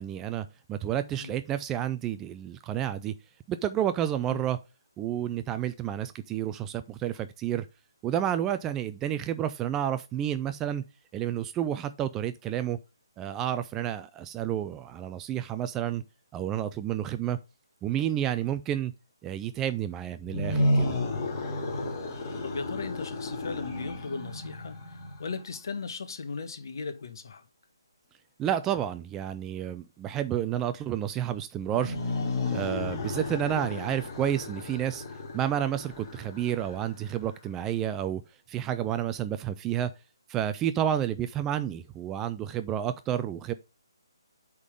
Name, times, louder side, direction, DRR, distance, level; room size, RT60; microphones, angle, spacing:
voice 1, 0.0-3.1 3.5-4.6 5.0-7.7 8.0-10.8 11.1-12.8 13.2-16.0 16.3-17.4 17.8-18.9 19.2-20.9 28.4-32.0 32.5-35.0 35.3-38.2 38.5-39.9 40.3-43.5, right 10 dB, 10° right, 0.3 m, -30 dB
sound 1, 20.2-25.4 31.6-37.3, left 1 dB, 30° left, 2.5 m, -32 dB
voice 2, 22.4-27.5, left 4 dB, 55° left, 1.2 m, -37 dB
8.2 x 3.7 x 5.0 m
hypercardioid pair, 160°, 2 cm